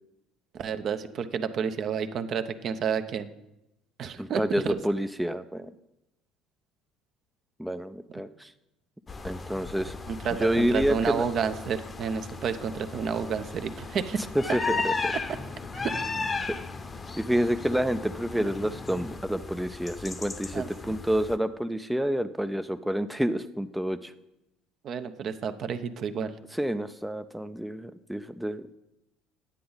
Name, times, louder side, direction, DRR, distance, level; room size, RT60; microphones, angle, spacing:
voice 1, 0.5-3.3 4.0-4.8 10.1-14.2 15.7-15.9 16.2-16.4 20.5-21.0 24.8-26.3, right 7 dB, 50° right, 10 dB, 0.7 m, -30 dB
voice 2, 4.2-5.7 7.6-8.5 9.2-10.0 10.4-11.2 14.3-15.1 17.2-24.1 26.5-28.7, equal, 5° right, 9 dB, 0.4 m, -28 dB
sound 1, 9.1-21.4, left 4 dB, 30° left, 0.8 m, -36 dB
9.9 x 8.5 x 3.9 m, 0.89 s
hypercardioid pair, 65°, 0 cm